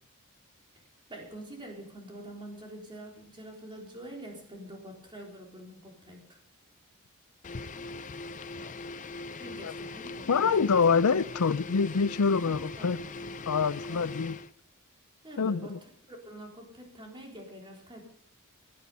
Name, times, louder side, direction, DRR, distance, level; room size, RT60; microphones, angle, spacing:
voice 1, 1.1-6.4 9.4-10.8 12.4-13.3 13.9-14.1 15.2-18.1, right 1 dB, 25° right, 3.9 m, -46 dB
sound 1, 7.4-14.5, left 3 dB, 35° left, 0.5 m, -41 dB
voice 2, 10.3-13.0 13.5-14.4 15.4-15.8, left 5 dB, 80° left, 0.6 m, -25 dB
17.5 x 10.5 x 5.5 m
head